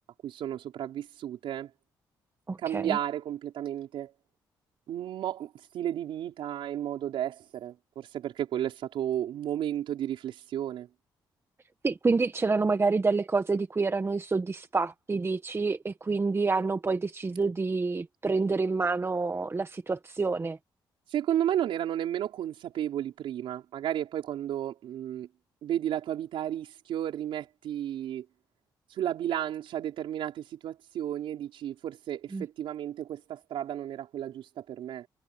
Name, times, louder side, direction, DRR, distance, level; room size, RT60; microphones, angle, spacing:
voice 1, 0.2-1.7 2.6-4.1 4.9-10.9 21.1-25.3 25.6-28.2 28.9-35.1, right 11 dB, 80° right, 4.9 m, -33 dB
voice 2, 2.5-3.0 11.8-20.6 32.3-32.4, right 4 dB, 30° right, 1.2 m, -28 dB
cardioid pair, 75°, 9 cm